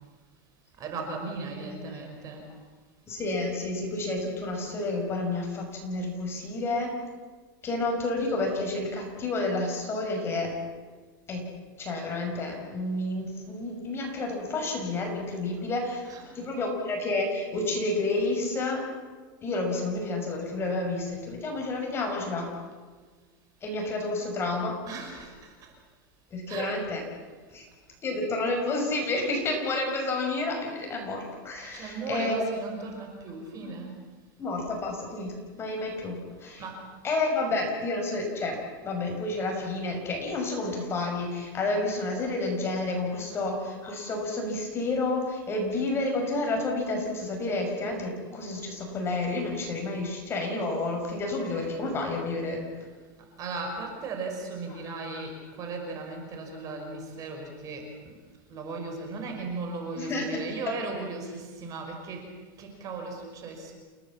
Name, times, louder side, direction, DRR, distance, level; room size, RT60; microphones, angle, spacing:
voice 1, 0.8-2.4 16.0-16.2 24.9-25.7 26.5-26.8 31.7-34.0 36.6-36.8 43.3-43.6 53.4-57.9 58.5-62.2 62.6-63.7, right 3 dB, 30° right, 3 dB, 5.2 m, -37 dB
voice 2, 1.7-2.0 3.1-6.9 7.6-10.5 11.3-11.4 11.8-16.1 16.3-18.8 19.4-22.5 23.6-24.8 26.3-27.0 27.5-27.7 28.0-32.5 33.6-33.7 34.4-36.6 37.0-38.6 38.8-52.6 54.8-54.9 60.0-60.4, left 2 dB, 20° left, 1 dB, 5.9 m, -30 dB
29.5 x 17.5 x 7.4 m, 1.4 s
supercardioid pair, 150°, 11 cm